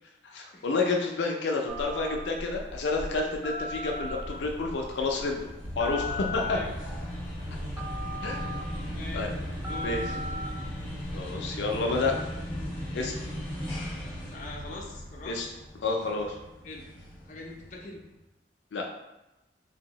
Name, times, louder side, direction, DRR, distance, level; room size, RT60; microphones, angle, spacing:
voice 1, 0.2-5.5 5.8-6.6 8.2-8.6 9.1-9.3 9.8-10.0 11.1-12.2 12.9-13.3 15.3-15.5 15.8-16.4 18.7-18.9, left 3 dB, 90° left, 1 dB, 0.4 m, -29 dB
Telephone, 1.7-11.2, left 1 dB, 10° right, 0.4 m, -39 dB
sound 1, 3.6-18.1, equal, 5° left, 1.2 m, -40 dB
Bass Drum roll, 5.6-15.7, equal, 55° right, 0.7 m, -41 dB
voice 2, 6.4-6.7 8.0-8.4 8.9-10.3 14.3-15.4 16.6-16.9 17.2-18.0, left 2 dB, 45° left, -2 dB, 0.6 m, -43 dB
3.4 x 2.7 x 2.9 m, 0.97 s
head